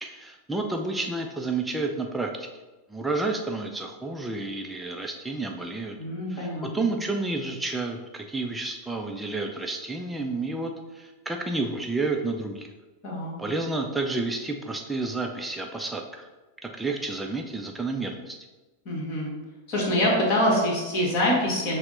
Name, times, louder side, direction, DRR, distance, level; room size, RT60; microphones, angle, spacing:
voice 1, 0.0-2.3 2.9-6.0 6.3-12.7 13.4-16.2 16.6-18.4, right 3 dB, 5° right, 2 dB, 0.4 m, -30 dB
voice 2, 6.0-6.9 13.0-13.3 18.8-19.3 19.7-21.8, left 1 dB, 40° left, -2 dB, 1.4 m, -25 dB
5.8 x 2.1 x 3.7 m, 1.2 s
figure-of-eight pair, 90°, 0 cm